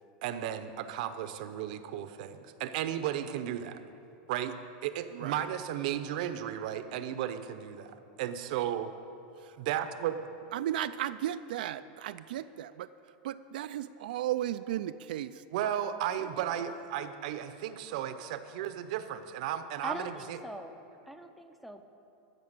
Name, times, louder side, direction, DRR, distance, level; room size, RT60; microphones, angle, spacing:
voice 1, 0.2-3.8 4.3-7.9 8.2-8.9 9.6-10.2 15.5-20.4, right 10 dB, 60° right, 11 dB, 0.7 m, -34 dB
voice 2, 5.1-5.5 10.5-12.9 13.2-15.4 16.2-16.3, right 12 dB, 85° right, 12 dB, 0.3 m, -35 dB
voice 3, 19.8-20.8 21.1-21.8, right 1 dB, ahead, 5 dB, 0.5 m, -41 dB
14.0 x 6.8 x 6.7 m, 2.8 s
supercardioid pair, 165°, 5 cm